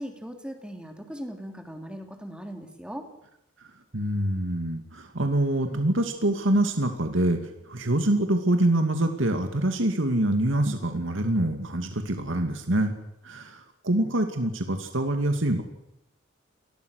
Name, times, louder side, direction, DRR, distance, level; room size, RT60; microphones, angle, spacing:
voice 1, 0.0-3.0, equal, 5° right, 4 dB, 3.2 m, -39 dB
voice 2, 3.9-12.9 13.2-15.6, right 1 dB, 85° right, 6 dB, 2.5 m, -25 dB
29.0 x 20.0 x 6.6 m, 0.81 s
head